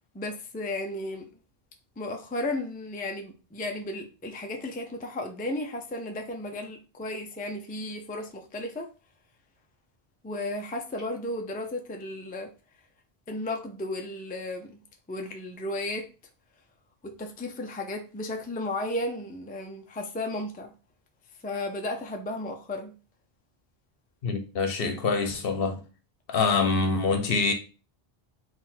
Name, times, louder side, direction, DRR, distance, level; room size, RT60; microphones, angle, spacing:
voice 1, 0.1-1.3 2.0-8.9 10.2-12.5 13.3-14.8 15.1-16.1 17.0-20.7 21.4-22.9, left 1 dB, 15° left, 0.4 m, -34 dB
voice 2, 24.2-25.8 26.3-27.5, left 4 dB, 65° left, 0.9 m, -25 dB
4.3 x 2.5 x 3.8 m
omnidirectional pair, 1.0 m